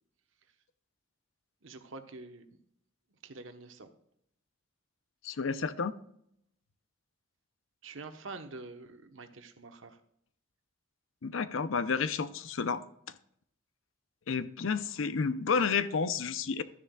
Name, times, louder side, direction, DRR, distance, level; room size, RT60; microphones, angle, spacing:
voice 1, 1.6-2.5 3.2-3.9 7.8-10.0, right 3 dB, 75° right, 1.1 m, -46 dB
voice 2, 5.2-6.0 11.2-12.8 14.3-16.6, left 5 dB, 75° left, 0.6 m, -31 dB
12.5 x 10.0 x 2.3 m
head